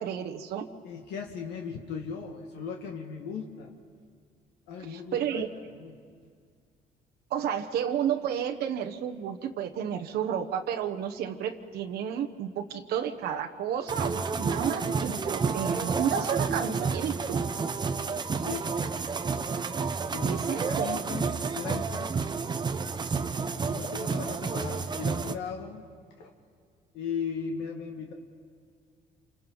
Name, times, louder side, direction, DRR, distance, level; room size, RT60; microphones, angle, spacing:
voice 1, 0.0-0.7 4.9-5.5 7.3-17.4 20.2-21.0, right 9 dB, 70° right, 3 dB, 1.1 m, -31 dB
voice 2, 0.8-3.7 4.7-5.5 5.8-6.0 18.3-18.8 20.1-22.1 23.7-25.8 26.2-26.3 26.9-28.1, left 6 dB, 85° left, 1 dB, 1.8 m, -37 dB
sound 1, 13.9-25.4, right 5 dB, 25° right, 0.8 m, -30 dB
28.5 x 27.5 x 3.9 m, 2.1 s
cardioid pair, 110°, 17 cm